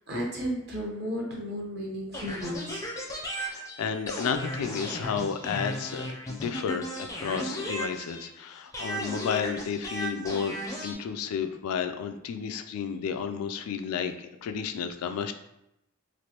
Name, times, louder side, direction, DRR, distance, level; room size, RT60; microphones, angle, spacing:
voice 1, 0.1-2.8 10.9-11.1, equal, 50° right, -2 dB, 0.8 m, -34 dB
sound 1, 2.1-8.4 8.7-10.9, equal, 15° left, 0.4 m, -35 dB
voice 2, 3.4-10.6 10.8-15.3, left 6 dB, 80° left, 9 dB, 0.3 m, -32 dB
3.2 x 2.5 x 2.9 m, 0.84 s
head